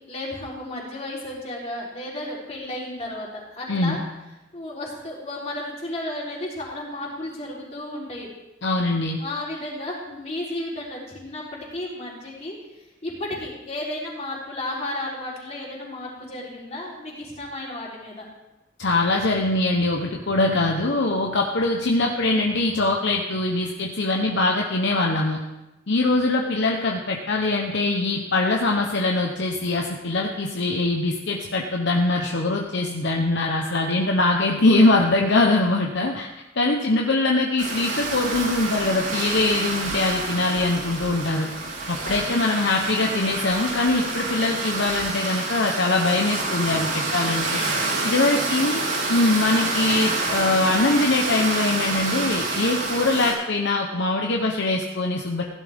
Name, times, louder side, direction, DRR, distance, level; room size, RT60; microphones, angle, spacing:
voice 1, 0.1-4.0 4.5-8.3 9.2-18.3 36.7-37.0 42.0-42.4 48.1-48.8, left 1 dB, 35° left, -4 dB, 3.8 m, -33 dB
voice 2, 8.6-9.2 18.8-25.4 25.9-36.3 36.6-41.5 41.9-47.6 48.0-48.8 49.1-55.4, left 2 dB, 60° left, 1 dB, 1.0 m, -22 dB
sound 1, 37.6-53.3, right 3 dB, 75° right, 4.0 m, -28 dB
16.0 x 11.5 x 3.6 m, 0.96 s
head